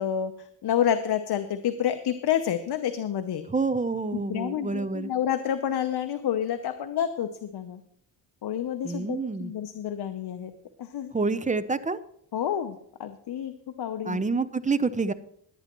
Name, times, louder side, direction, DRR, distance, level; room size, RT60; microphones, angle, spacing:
voice 1, 0.0-3.5 4.1-7.8 8.4-10.5 10.8-11.1 12.3-13.5 13.8-14.2, left 9 dB, 60° left, 9 dB, 0.9 m, -29 dB
voice 2, 3.5-5.1 8.8-9.5 11.1-12.0 14.0-15.1, right 4 dB, 15° right, 13 dB, 0.6 m, -27 dB
21.0 x 9.3 x 3.0 m, 0.69 s
cardioid pair, 120°, 43 cm